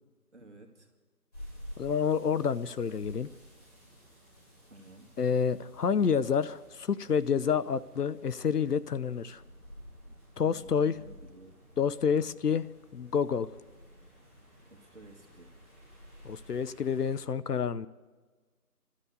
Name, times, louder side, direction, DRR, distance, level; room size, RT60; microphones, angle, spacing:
voice 1, 0.3-0.9 4.7-5.1 10.4-11.5 12.1-12.3 14.7-15.5, right 2 dB, 50° right, 2 dB, 2.1 m, -53 dB
sound 1, 1.3-17.2, equal, 25° left, 6.5 m, -52 dB
voice 2, 1.8-3.3 5.2-9.4 10.4-11.0 11.8-12.7 12.9-13.5 16.2-17.9, left 6 dB, 80° left, 15 dB, 0.7 m, -28 dB
26.5 x 13.0 x 4.0 m, 1.4 s
figure-of-eight pair, 175°, 46 cm